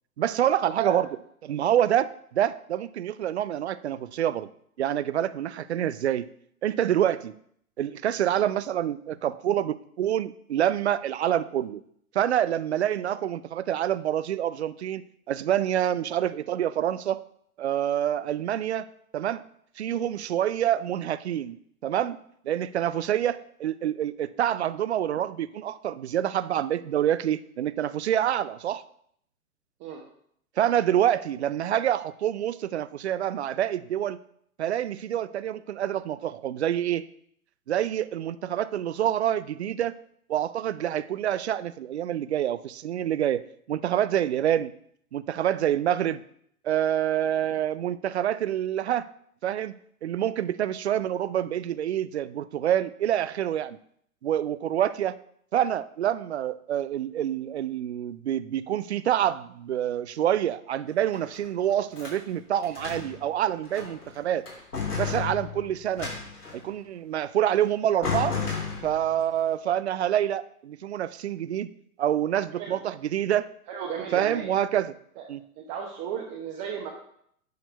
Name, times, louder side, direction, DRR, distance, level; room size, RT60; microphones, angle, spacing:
voice 1, 0.2-1.1 1.4-4.5 4.8-6.3 6.6-7.4 7.8-11.8 12.1-17.2 17.6-18.9 19.1-19.4 19.8-21.6 21.8-28.8 30.6-34.2 34.6-37.1 37.7-39.9 40.3-43.4 43.7-44.7 45.1-46.2 46.6-49.0 49.4-49.8 50.0-53.8 54.2-55.2 55.5-64.5 65.0-66.1 66.5-68.4 68.8-71.7 72.0-73.5 74.1-74.9 75.3-75.4, right 11 dB, 50° right, 16 dB, 0.5 m, -27 dB
sound 1, 60.9-62.2 62.6-63.2 63.6-64.1 64.5-66.6 67.6-67.7 68.0-69.2, left 5 dB, 80° left, 3.4 m, -33 dB
voice 2, 73.7-74.5 75.2-75.3 75.6-76.9, right 7 dB, 25° right, -1 dB, 1.0 m, -34 dB
9.3 x 4.4 x 5.2 m, 0.67 s
figure-of-eight pair, 120°, 45 cm